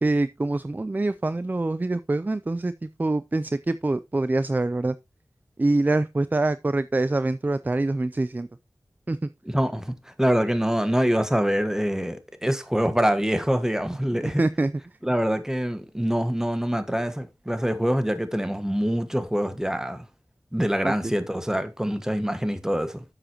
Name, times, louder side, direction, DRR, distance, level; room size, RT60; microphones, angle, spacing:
voice 1, 0.0-5.0 5.6-8.5 9.1-9.3 14.2-14.7 20.8-20.9, right 2 dB, 25° right, 0.4 m, -25 dB
voice 2, 9.4-14.4 15.0-20.0 20.5-23.0, equal, 5° right, 1.4 m, -25 dB
10.0 x 7.4 x 3.0 m
wide cardioid pair, 70°, 7 cm